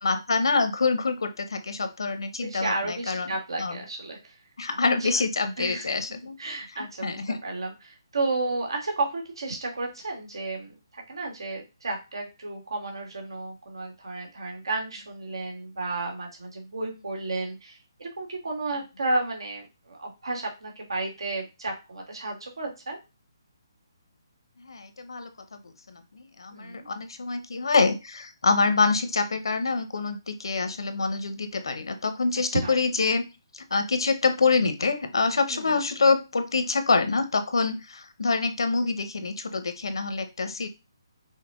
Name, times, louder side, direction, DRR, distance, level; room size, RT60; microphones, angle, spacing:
voice 1, 0.0-3.3 3.6-3.8 4.6-6.4 7.0-7.4 24.6-25.3 25.6-33.2 33.5-40.7, left 4 dB, 85° left, 9 dB, 0.8 m, -26 dB
voice 2, 2.4-4.3 4.7-5.1 5.6-6.0 6.4-23.0 26.5-26.9 32.5-32.7 35.5-35.7, right 2 dB, 85° right, 1 dB, 1.6 m, -32 dB
5.6 x 2.2 x 3.6 m, 0.26 s
hypercardioid pair, 170°, 2 cm